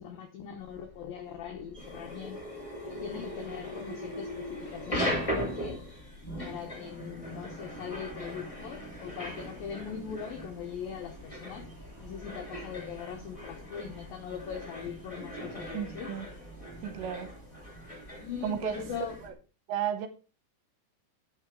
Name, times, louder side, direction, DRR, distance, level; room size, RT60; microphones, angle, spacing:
voice 1, 0.0-2.4 2.9-5.8 6.4-11.7 12.0-16.2 18.2-19.2, left 7 dB, 80° left, 2.0 m, -41 dB
Subway metro underground, 0.6-19.3, equal, 15° right, 0.8 m, -52 dB
sound 1, 1.7-19.3, equal, 25° left, 0.7 m, -39 dB
voice 2, 15.7-16.3 16.8-17.3 18.4-18.8 19.2-19.3 19.7-20.1, right 9 dB, 80° right, 2.8 m, -33 dB
8.9 x 6.6 x 4.7 m
omnidirectional pair, 5.5 m